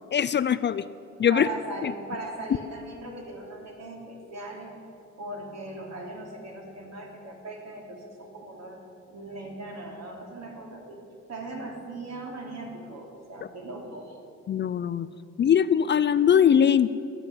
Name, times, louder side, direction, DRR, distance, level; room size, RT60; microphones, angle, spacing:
voice 1, 0.1-0.9 1.2-1.5 1.8-1.9 14.5-15.1 15.4-16.9, left 8 dB, 40° left, 15 dB, 0.4 m, -21 dB
voice 2, 1.3-4.7 5.2-8.8 9.1-11.0 11.3-14.2, right 2 dB, 60° right, 0 dB, 3.4 m, -39 dB
12.5 x 9.0 x 9.4 m, 2.5 s
cardioid pair, 90°, 30 cm